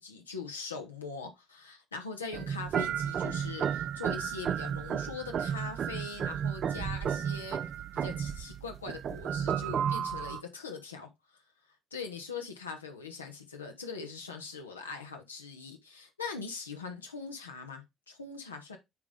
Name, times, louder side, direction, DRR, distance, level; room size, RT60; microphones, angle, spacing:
voice 1, 0.0-7.6 7.9-11.1 11.9-18.8, left 5 dB, 80° left, 1.1 m, -42 dB
sound 1, 2.3-10.4, right 8 dB, 45° right, 0.5 m, -33 dB
9.4 x 3.7 x 3.5 m
figure-of-eight pair, 50°, 0 cm